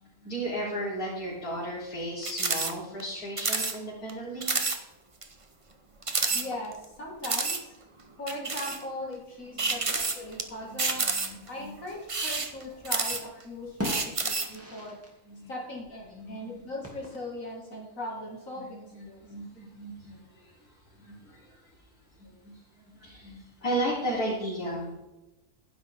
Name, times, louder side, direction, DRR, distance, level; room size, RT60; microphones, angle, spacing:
voice 1, 0.2-4.6 6.3-6.5 9.5-9.7 10.5-11.7 14.6-14.9 15.3-15.5 16.1-16.6 18.6-18.7 18.9-20.2 21.0-21.4 22.2-22.6 23.0-24.9, right 1 dB, 80° left, -8 dB, 4.1 m, -35 dB
sound 1, 2.2-2.7 3.0-3.1 3.4-3.8 4.1-4.2 4.4-4.8 5.2-5.3 6.0-6.8 7.2-7.6 8.3-8.8 9.6-10.4 10.8-11.5 12.0-13.4 13.8-14.6, right 3 dB, 25° right, 0.8 m, -29 dB
voice 2, 6.3-7.8 8.2-11.0 11.5-15.0 15.5-19.3, left 1 dB, 60° left, -2 dB, 2.6 m, -39 dB
sound 2, 12.5-13.3 13.5-15.2 15.4-15.5 16.8-17.5, left 1 dB, 10° right, 2.4 m, -39 dB
11.5 x 10.5 x 3.6 m, 1.0 s
omnidirectional pair, 1.6 m